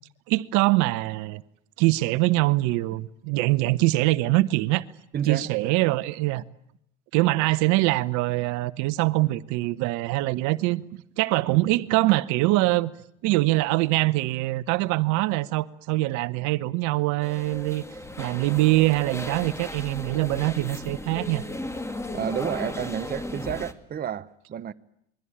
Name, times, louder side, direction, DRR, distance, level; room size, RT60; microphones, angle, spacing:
voice 1, 0.3-1.4 1.8-4.8 5.3-6.4 7.1-10.8 11.2-12.9 13.2-17.8 18.2-21.4, right 19 dB, 55° right, 1.1 m, -23 dB
voice 2, 5.1-5.8 22.1-24.7, right 9 dB, 25° right, 1.0 m, -31 dB
sound 1, 17.2-23.7, left 1 dB, 10° left, 2.2 m, -36 dB
28.0 x 22.5 x 8.8 m
hypercardioid pair, 85°, 34 cm